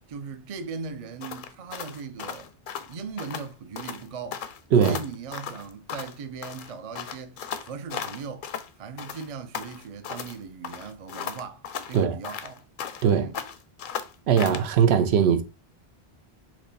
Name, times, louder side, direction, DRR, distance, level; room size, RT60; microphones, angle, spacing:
voice 1, 0.1-2.5 2.9-4.4 4.8-8.5 8.8-12.6 13.1-13.4, right 5 dB, 45° right, 0.5 m, -38 dB
sound 1, 1.2-3.5 3.8-4.0 4.3-6.2 6.4-8.7 9.0-10.4 10.6-13.1 13.3-14.7, left 7 dB, 60° left, 0.6 m, -36 dB
voice 2, 14.3-15.4, right 7 dB, 85° right, 0.9 m, -20 dB
5.9 x 2.2 x 4.0 m
omnidirectional pair, 1.1 m